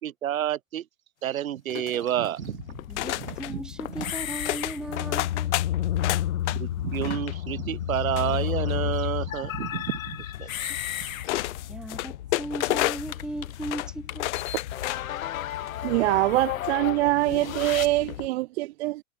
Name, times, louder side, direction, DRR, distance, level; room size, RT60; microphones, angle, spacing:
voice 1, 0.0-0.9 1.2-2.8 3.2-3.6 4.0-4.1 6.5-10.7 11.0-11.1, right 11 dB, 85° right, 3.9 m, -30 dB
sound 1, 1.7-2.4 3.0-3.5 3.9-4.2 4.5-6.6 6.9-7.3 8.2-8.9 10.3-10.4 11.2-13.2 13.5-13.9 14.2-15.2 15.6-15.7, left 18 dB, 60° left, 2.2 m, -31 dB
sound 2, 2.4-18.3, left 12 dB, 80° left, 3.5 m, -32 dB
voice 2, 2.9-5.5 11.6-14.3, right 1 dB, ahead, 0.9 m, -37 dB
voice 3, 15.8-19.0, right 18 dB, 55° right, 0.5 m, -24 dB
supercardioid pair, 140°, 40 cm